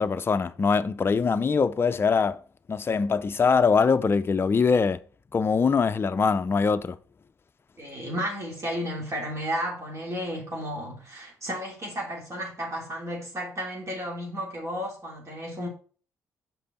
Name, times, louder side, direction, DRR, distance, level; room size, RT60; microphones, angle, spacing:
voice 1, 0.0-2.4 2.7-5.0 5.3-7.0, left 5 dB, 30° left, 0.5 m, -23 dB
voice 2, 7.8-15.7, equal, 40° right, 3.0 m, -33 dB
6.0 x 5.1 x 4.3 m
hypercardioid pair, 50°, 7 cm